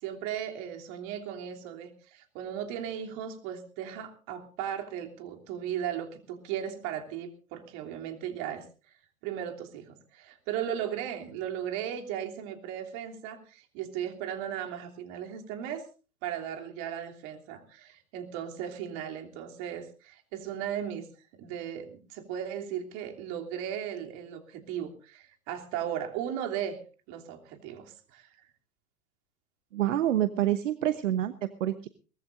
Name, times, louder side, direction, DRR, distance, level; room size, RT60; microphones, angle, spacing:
voice 1, 0.0-8.6 9.2-15.8 16.2-21.1 21.4-26.8 27.1-28.3, right 9 dB, 40° right, 3 dB, 3.2 m, -36 dB
voice 2, 29.7-31.9, right 12 dB, 65° right, 12 dB, 1.1 m, -27 dB
22.5 x 19.0 x 2.6 m, 0.35 s
figure-of-eight pair, 105°, 41 cm